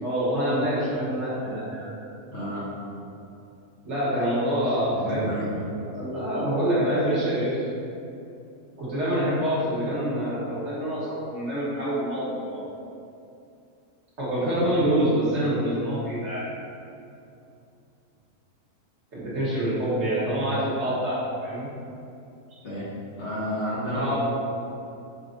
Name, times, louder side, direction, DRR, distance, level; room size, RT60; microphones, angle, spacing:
voice 1, 0.0-1.9 3.8-5.4 5.9-7.7 8.8-12.7 14.2-16.5 19.1-21.7 23.9-24.2, right 1 dB, 50° right, -9 dB, 1.4 m, -26 dB
voice 2, 2.3-2.7 5.0-5.6 14.4-14.7 22.6-22.8 23.2-24.2, equal, 55° left, -9 dB, 1.1 m, -31 dB
5.9 x 3.0 x 2.5 m, 2.7 s
omnidirectional pair, 1.6 m